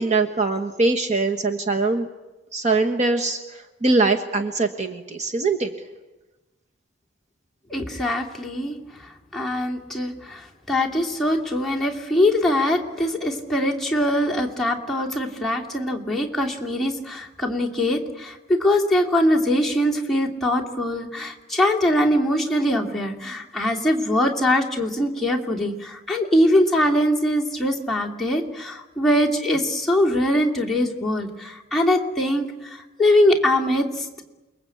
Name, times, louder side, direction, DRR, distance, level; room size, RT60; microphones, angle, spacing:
voice 1, 0.0-2.1 2.5-5.7, right 3 dB, 35° right, 4 dB, 1.3 m, -22 dB
voice 2, 7.7-8.8 9.3-34.1, left 1 dB, ahead, -3 dB, 2.7 m, -22 dB
29.0 x 21.5 x 8.7 m, 1.1 s
head